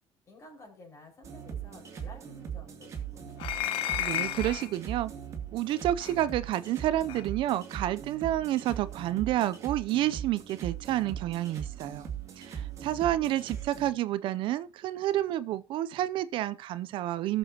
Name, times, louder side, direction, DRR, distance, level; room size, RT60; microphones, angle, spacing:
voice 1, 0.3-3.4 12.5-13.6, left 2 dB, 30° left, 5.5 m, -53 dB
sound 1, 1.2-13.9, right 8 dB, 30° right, 2.7 m, -40 dB
sound 2, 3.4-4.7 6.0-6.2 7.1-7.2, left 12 dB, 65° left, 1.2 m, -32 dB
voice 2, 3.9-5.1 5.5-12.1 12.4-17.4, right 13 dB, 60° right, 0.6 m, -29 dB
19.0 x 6.9 x 2.9 m
cardioid pair, 160°, 10 cm